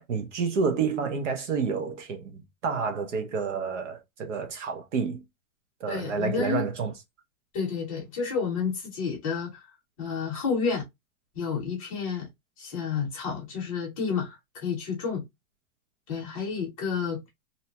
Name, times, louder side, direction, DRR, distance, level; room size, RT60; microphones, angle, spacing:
voice 1, 0.0-5.2 5.8-6.9, right 5 dB, 55° right, 0.8 m, -29 dB
voice 2, 5.9-6.6 7.5-9.6 10.0-10.8 11.3-12.3 12.6-15.2 16.1-17.2, left 6 dB, 25° left, 0.8 m, -30 dB
2.7 x 2.2 x 2.8 m
supercardioid pair, 180°, 43 cm